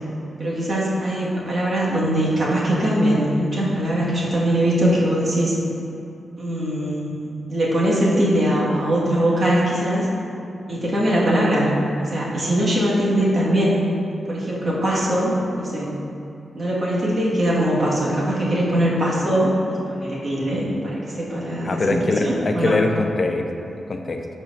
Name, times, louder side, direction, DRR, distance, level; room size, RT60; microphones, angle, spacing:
voice 1, 0.4-5.5 6.4-7.0 7.5-10.1 10.7-11.7 12.0-13.7 14.3-15.9 16.5-22.8, right 1 dB, 40° right, -6 dB, 1.5 m, -21 dB
voice 2, 21.6-23.4 23.9-24.2, left 2 dB, 40° left, 4 dB, 0.5 m, -22 dB
11.0 x 4.5 x 2.5 m, 2.7 s
wide cardioid pair, 135°, 0 cm